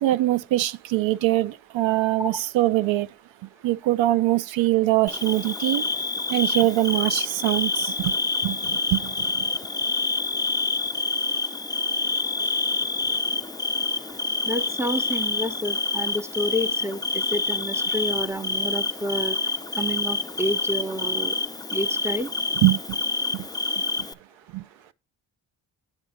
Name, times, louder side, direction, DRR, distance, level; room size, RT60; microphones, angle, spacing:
voice 1, 0.0-3.1 3.6-5.8 6.3-8.1 8.4-9.3 22.6-22.8 23.3-23.4 24.5-24.6, right 16 dB, 75° right, 0.5 m, -23 dB
Bird / Cricket, 5.1-24.1, left 3 dB, 10° left, 0.3 m, -27 dB
voice 2, 14.4-19.4 19.7-21.4 21.7-22.3, equal, 5° right, 0.8 m, -29 dB
8.6 x 3.7 x 4.9 m
supercardioid pair, 40°, 46 cm